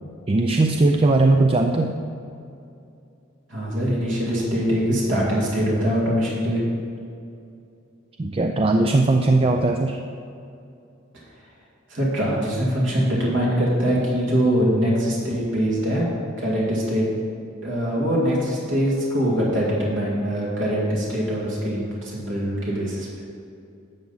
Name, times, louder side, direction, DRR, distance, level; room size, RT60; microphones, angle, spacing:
voice 1, 0.3-2.0 8.2-10.0, right 2 dB, 30° right, 4 dB, 0.4 m, -19 dB
voice 2, 3.5-6.6 11.9-16.1 16.4-17.1 17.6-23.1, equal, 65° right, -5 dB, 2.3 m, -23 dB
11.5 x 7.2 x 4.0 m, 2.6 s
head